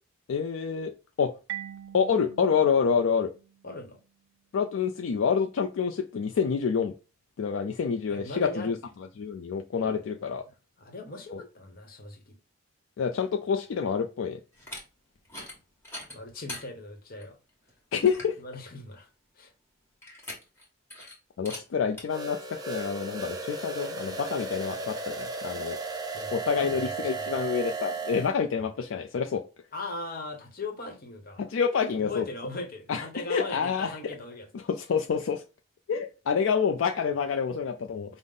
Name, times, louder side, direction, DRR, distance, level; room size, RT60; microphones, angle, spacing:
voice 1, 0.3-1.3 1.9-3.3 4.5-6.9 7.4-8.8 9.2-10.4 11.3-11.4 13.0-14.4 17.9-18.4 21.4-25.8 26.3-29.4 31.5-32.2 32.9-33.9 34.7-35.4 35.9-38.2, left 6 dB, 70° left, 0.4 m, -27 dB
Marimba xylophone, 1.5-4.1, right 11 dB, 70° right, 0.4 m, -43 dB
voice 2, 3.6-4.0 8.1-8.7 9.8-10.1 10.8-12.4 16.1-17.4 18.4-19.1 19.3-19.5 26.1-27.4 29.7-31.4 31.9-34.5, left 2 dB, 45° left, 0.9 m, -39 dB
sound 1, 14.5-14.8 15.2-15.6 15.8-16.6 17.2-17.3 17.7-17.8 18.0-18.4 20.0-20.6 20.9-21.1 21.4-21.6 22.0-22.1, left 1 dB, 10° left, 1.3 m, -41 dB
sound 2, 22.1-28.3, right 3 dB, 20° right, 0.6 m, -35 dB
5.3 x 2.0 x 3.7 m
head